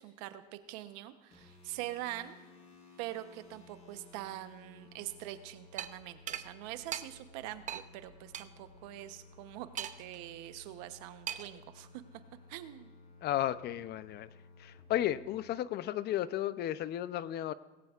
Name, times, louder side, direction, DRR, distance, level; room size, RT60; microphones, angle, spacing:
voice 1, 0.0-2.4 3.0-11.9 12.5-12.9, right 14 dB, 80° right, 10 dB, 1.0 m, -44 dB
sound 1, 1.3-15.4, left 3 dB, 35° left, 4.6 m, -57 dB
sound 2, 5.8-5.9 6.3-6.4 6.9-7.0 7.7-7.8 8.3-8.4 9.8-10.2 11.3-11.6, right 9 dB, 35° right, 0.7 m, -38 dB
voice 2, 13.2-14.3 14.6-17.5, left 12 dB, 55° left, 15 dB, 0.6 m, -34 dB
18.5 x 17.0 x 2.5 m, 1.2 s
supercardioid pair, 95°, 21 cm